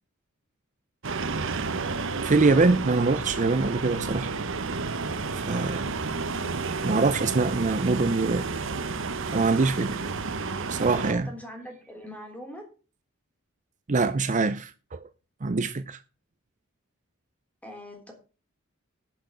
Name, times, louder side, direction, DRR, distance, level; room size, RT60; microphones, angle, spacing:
sound 1, 1.0-11.1, right 4 dB, 60° right, 1.0 m, -31 dB
voice 1, 2.2-4.3 5.3-5.9 6.8-8.5 9.3-10.0 10.7-11.3 13.9-15.0 15.4-16.0, right 3 dB, 35° right, 0.6 m, -24 dB
voice 2, 6.3-6.7 7.8-7.9 10.9-12.7 17.6-18.1, left 1 dB, 5° left, 3.4 m, -43 dB
12.0 x 6.1 x 6.8 m
head